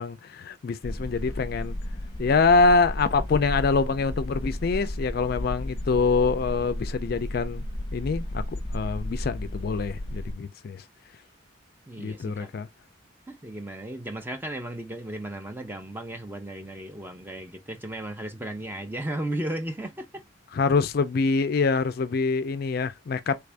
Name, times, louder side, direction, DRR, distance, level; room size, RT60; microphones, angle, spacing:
voice 1, 0.0-1.8 2.2-7.7 7.9-8.4 8.7-10.8 12.0-12.7 20.5-23.4, left 4 dB, 50° left, 0.4 m, -25 dB
sound 1, 0.8-10.3, left 1 dB, 25° left, 0.8 m, -33 dB
voice 2, 11.9-12.5 13.3-20.2, right 1 dB, 10° right, 0.5 m, -35 dB
3.4 x 2.5 x 3.3 m
head